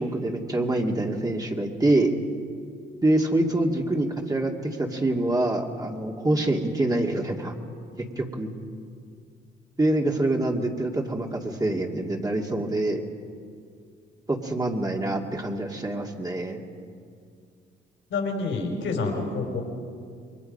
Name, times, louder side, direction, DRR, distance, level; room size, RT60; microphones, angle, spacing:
voice 1, 0.0-2.1 3.0-7.6 8.2-8.5 9.8-13.0 14.3-16.6, right 1 dB, 20° right, 1 dB, 2.2 m, -25 dB
voice 2, 18.1-19.6, left 3 dB, 75° left, 1 dB, 5.5 m, -28 dB
28.5 x 22.0 x 5.4 m, 2.2 s
cardioid pair, 90°, 20 cm